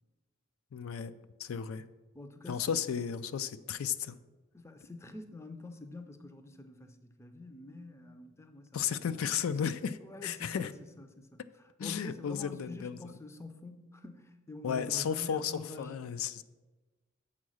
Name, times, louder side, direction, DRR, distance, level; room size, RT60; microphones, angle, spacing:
voice 1, 0.7-1.1 1.4-1.8 2.5-4.2 8.7-10.7 11.8-13.0 14.6-16.4, left 7 dB, 75° left, 12 dB, 0.4 m, -34 dB
voice 2, 2.1-2.8 4.5-9.0 10.0-15.9, left 2 dB, 15° left, 7 dB, 0.4 m, -47 dB
7.3 x 4.7 x 6.3 m, 1.2 s
head